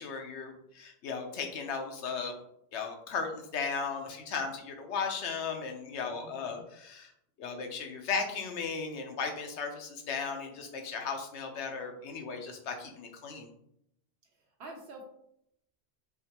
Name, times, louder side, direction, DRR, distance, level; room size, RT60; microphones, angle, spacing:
voice 1, 0.0-2.3 2.7-7.1 7.4-13.5, left 5 dB, 85° left, 4 dB, 1.0 m, -36 dB
voice 2, 6.0-6.7 14.2-15.0, right 2 dB, 80° right, 0 dB, 1.0 m, -49 dB
3.6 x 3.1 x 2.9 m, 0.75 s
omnidirectional pair, 1.1 m